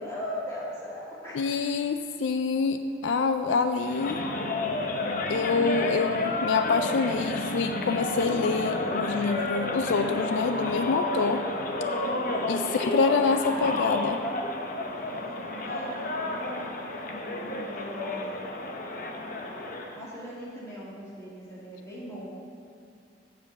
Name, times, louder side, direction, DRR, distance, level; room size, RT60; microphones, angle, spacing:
voice 1, 0.0-1.6 12.3-13.8 14.9-18.4 19.9-22.3, equal, 15° left, -8 dB, 2.3 m, -40 dB
voice 2, 1.3-4.2 5.3-11.4 12.5-14.2, left 4 dB, 80° left, 8 dB, 0.4 m, -26 dB
sound 1, 3.7-20.0, left 2 dB, 45° left, 0.8 m, -31 dB
8.1 x 4.8 x 7.2 m, 2.5 s
head